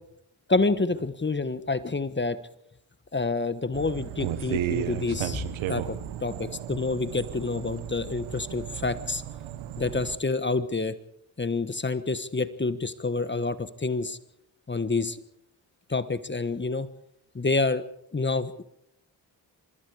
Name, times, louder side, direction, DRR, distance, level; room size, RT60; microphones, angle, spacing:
voice 1, 0.5-2.4 3.1-5.4 5.7-9.2 9.8-10.9 11.4-14.2 14.7-15.2 15.9-16.9 17.3-17.8 18.1-18.6, left 3 dB, 25° left, 13 dB, 1.3 m, -28 dB
sound 1, 3.7-10.2, right 11 dB, 85° right, 1.2 m, -34 dB
25.5 x 21.0 x 5.0 m, 0.77 s
supercardioid pair, 55°, 46 cm